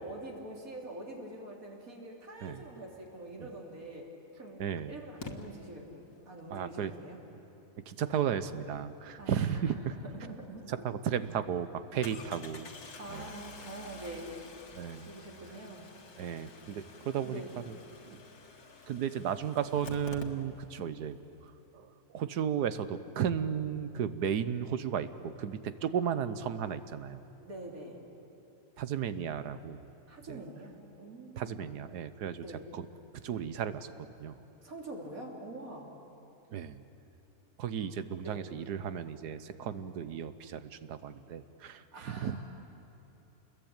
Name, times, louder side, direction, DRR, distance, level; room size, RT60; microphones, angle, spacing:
voice 1, 0.0-4.1 4.4-7.2 9.2-10.6 13.0-14.4 15.0-15.9 17.2-17.5 27.4-28.0 30.1-31.6 32.4-32.7 34.6-35.9 38.2-38.4 41.9-42.4, right 1 dB, 60° right, -1 dB, 3.9 m, -45 dB
Engine starting, 3.7-3.8 5.2-5.3 10.4-10.5 10.9-11.0 12.0-20.8 21.1-21.2 21.4-21.5, left 4 dB, 75° left, 2.2 m, -49 dB
voice 2, 4.6-4.9 6.5-6.9 7.9-9.9 10.7-12.7 13.1-13.3 14.7-15.1 16.2-17.4 17.7-17.8 18.1-18.2 18.9-21.2 21.7-27.2 28.8-29.9 30.3-30.4 31.4-32.8 33.2-34.4 36.5-36.8 37.6-42.4, right 8 dB, 85° right, 12 dB, 1.5 m, -34 dB
28.5 x 21.5 x 8.9 m, 2.9 s
omnidirectional pair, 1.7 m